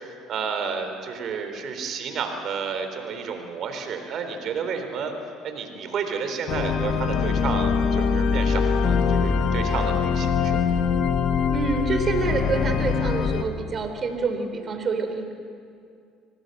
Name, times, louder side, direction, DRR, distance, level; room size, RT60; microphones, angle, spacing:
voice 1, 0.0-5.1 5.4-10.6, right 6 dB, 55° right, 6 dB, 3.8 m, -31 dB
sound 1, 6.5-13.4, left 6 dB, 60° left, 1.5 m, -23 dB
voice 2, 11.5-15.3, right 4 dB, 40° right, 6 dB, 3.9 m, -27 dB
25.5 x 19.0 x 8.0 m, 2.4 s
supercardioid pair, 75°, 0 cm